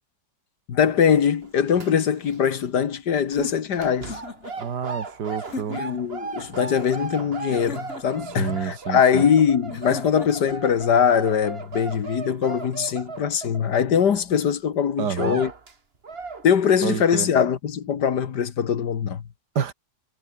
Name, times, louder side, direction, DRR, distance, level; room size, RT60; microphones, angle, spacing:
voice 1, 0.7-4.2 5.7-15.5 16.4-19.2, left 7 dB, 70° left, 2.1 m, -22 dB
sound 1, 1.4-2.4 2.6-2.9 3.7-14.2 14.6-14.7 15.1-15.7 16.0-16.4, right 4 dB, 35° right, 2.1 m, -36 dB
sound 2, 3.3-4.6 5.4-6.0 7.5-8.3 9.7-10.5, left 4 dB, 40° left, 2.4 m, -37 dB
voice 2, 4.6-5.8 8.4-9.2 15.0-15.4 16.8-17.3 19.6-19.7, right 7 dB, 70° right, 2.1 m, -28 dB
omnidirectional pair, 1.9 m